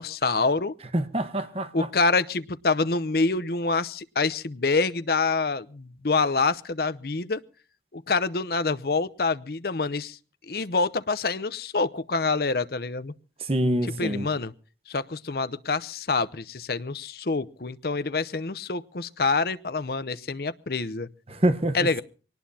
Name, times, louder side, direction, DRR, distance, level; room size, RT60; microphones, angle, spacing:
voice 1, 0.0-0.7 1.7-7.4 7.9-10.2 10.5-13.1 13.8-14.5 14.9-21.1 21.7-22.0, left 3 dB, 55° left, 0.8 m, -26 dB
voice 2, 0.9-1.9 13.5-14.3 21.4-21.7, right 1 dB, 35° right, 1.2 m, -25 dB
23.5 x 19.0 x 2.8 m
head